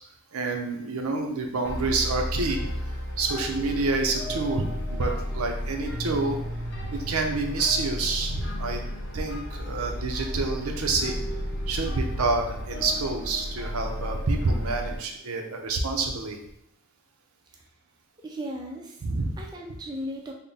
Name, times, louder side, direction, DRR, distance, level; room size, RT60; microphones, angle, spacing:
voice 1, 0.3-2.7 3.2-6.4 6.9-8.8 9.1-11.2 11.7-16.4 19.0-19.4, right 3 dB, 80° right, 3 dB, 0.6 m, -28 dB
sound 1, 1.6-15.0, equal, 55° left, 0.7 m, -33 dB
voice 2, 18.2-19.0 19.4-20.3, equal, 20° right, -1 dB, 0.4 m, -36 dB
3.5 x 2.1 x 3.9 m, 0.77 s
head